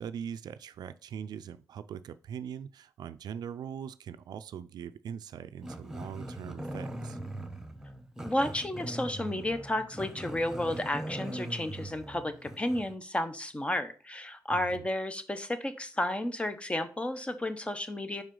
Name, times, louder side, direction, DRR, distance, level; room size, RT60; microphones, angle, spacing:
voice 1, 0.0-7.2 14.5-14.8, right 8 dB, 85° right, 0.4 m, -41 dB
Growling, 5.6-12.9, right 1 dB, 10° right, 0.9 m, -41 dB
voice 2, 8.2-18.2, left 1 dB, 15° left, 0.8 m, -32 dB
5.3 x 4.8 x 3.8 m
cardioid pair, 85°, 7 cm